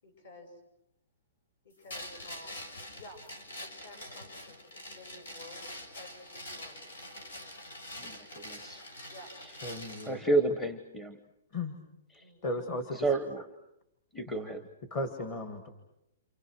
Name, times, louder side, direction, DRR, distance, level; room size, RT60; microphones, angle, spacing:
voice 1, 0.0-0.6 1.6-2.7 2.9-3.2 3.6-6.8 7.3-7.6 9.1-9.3 12.2-12.5, left 1 dB, 50° left, 7 dB, 7.2 m, -52 dB
sound 1, 1.9-10.1, left 1 dB, 85° left, 6.4 m, -45 dB
voice 2, 8.0-8.8 10.0-11.2 12.1-12.2 13.0-13.4 14.1-14.6, right 2 dB, 5° left, 6 dB, 1.0 m, -31 dB
voice 3, 9.6-10.2 11.5-11.8 12.4-13.1 14.3-14.5 14.9-15.7, left 2 dB, 30° left, 6 dB, 1.9 m, -36 dB
29.0 x 28.0 x 6.3 m, 0.83 s
hypercardioid pair, 175°, 0 cm